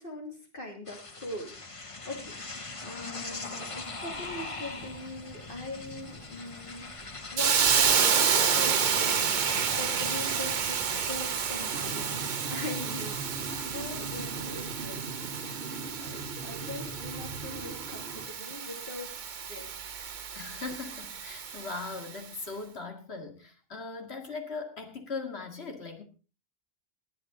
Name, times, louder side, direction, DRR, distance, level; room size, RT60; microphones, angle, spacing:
voice 1, 0.0-2.4 2.8-6.9 7.3-15.1 16.0-19.1 19.4-19.7, left 2 dB, 60° left, 1 dB, 3.3 m, -41 dB
sound 1, 0.9-12.3, left 3 dB, 30° left, 1.1 m, -42 dB
Hiss, 7.4-22.1, right 6 dB, 50° right, 0.9 m, -30 dB
sound 2, 11.7-18.3, right 3 dB, 70° right, 1.4 m, -40 dB
voice 2, 20.3-26.0, left 3 dB, 85° left, 4 dB, 2.4 m, -39 dB
19.5 x 9.0 x 3.8 m, 0.34 s
omnidirectional pair, 1.0 m